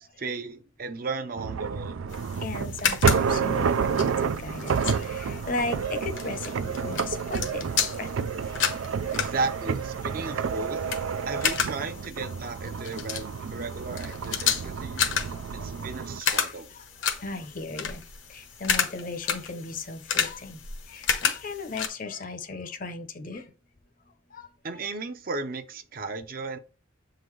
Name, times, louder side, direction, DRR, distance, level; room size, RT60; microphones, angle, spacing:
voice 1, 0.2-1.9 9.1-10.8 11.3-15.1 15.5-16.7 24.6-26.6, right 3 dB, 45° right, 0.6 m, -35 dB
sound 1, 1.4-16.2, right 6 dB, 90° right, 0.4 m, -30 dB
sound 2, 2.1-21.9, left 7 dB, 70° left, 1.0 m, -32 dB
voice 2, 2.4-7.7 8.0-8.1 8.8-8.9 14.9-15.7 16.3-16.8 17.1-18.0 18.3-20.6 20.9-23.5 24.3-24.5, left 3 dB, 45° left, 0.7 m, -36 dB
7.6 x 3.9 x 3.2 m
head